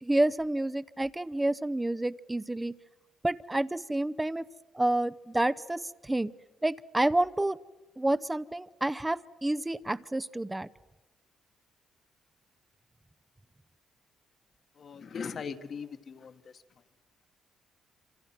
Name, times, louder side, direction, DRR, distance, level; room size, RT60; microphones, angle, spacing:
voice 1, 0.0-2.7 3.2-4.4 4.7-6.3 6.6-7.6 8.0-10.7, right 1 dB, 10° right, 16 dB, 0.7 m, -29 dB
voice 2, 14.8-16.4, left 6 dB, 50° left, 9 dB, 1.5 m, -39 dB
26.5 x 26.5 x 6.1 m, 1.2 s
cardioid pair, 90°, 0 cm